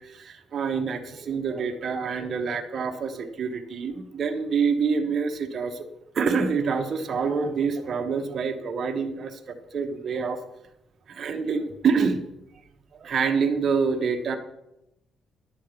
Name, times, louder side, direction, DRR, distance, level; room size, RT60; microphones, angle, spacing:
voice 1, 0.0-5.8 6.1-10.4 11.1-12.2 12.9-14.4, right 5 dB, 50° right, 5 dB, 1.1 m, -26 dB
10.5 x 7.6 x 5.1 m, 0.88 s
cardioid pair, 90°, 0 cm